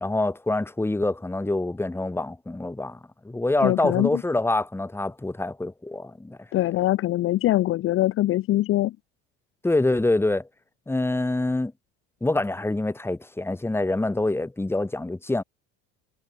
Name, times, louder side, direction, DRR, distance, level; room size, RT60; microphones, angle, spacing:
voice 1, 0.0-3.0 3.2-6.4 9.6-10.5 10.9-11.7 12.2-15.4, left 2 dB, 5° left, 1.3 m, -25 dB
voice 2, 3.6-4.2 6.5-9.0, left 15 dB, 40° left, 0.5 m, -23 dB
hypercardioid pair, 80°, 32 cm